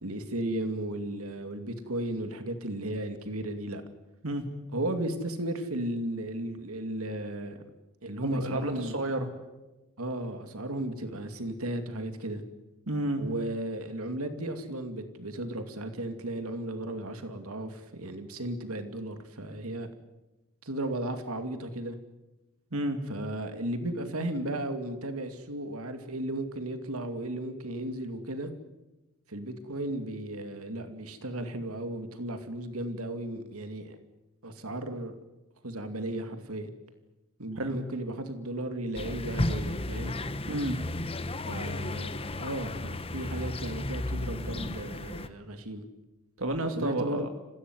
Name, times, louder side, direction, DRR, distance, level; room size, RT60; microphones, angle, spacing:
voice 1, 0.0-3.8 4.7-7.6 8.0-9.0 10.0-12.4 13.2-19.9 20.6-22.0 23.1-28.5 29.3-34.0 34.4-35.1 35.6-36.7 37.4-40.2 41.5-45.9 46.8-47.3, right 1 dB, 90° right, 8 dB, 2.5 m, -35 dB
voice 2, 8.2-9.3 12.9-13.2 22.7-23.0 37.6-37.8 40.5-40.8 46.4-47.3, right 1 dB, 70° right, 6 dB, 2.3 m, -30 dB
sound 1, 38.9-45.3, left 2 dB, 25° left, 1.1 m, -34 dB
28.5 x 16.0 x 9.6 m, 1.1 s
head